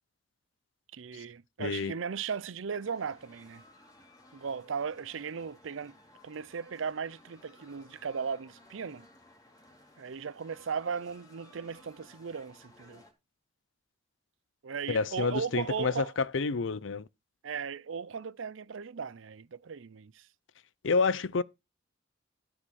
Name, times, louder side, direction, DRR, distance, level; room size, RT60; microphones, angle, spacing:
voice 1, 0.9-3.6 4.3-6.0 6.2-9.1 10.0-13.0 14.6-16.1 17.4-20.3, right 6 dB, 80° right, 0.5 m, -37 dB
voice 2, 1.6-1.9 14.9-17.1 20.8-21.4, left 4 dB, 75° left, 0.6 m, -29 dB
sound 1, 2.7-13.1, left 1 dB, 20° left, 2.7 m, -58 dB
13.0 x 5.0 x 6.3 m
head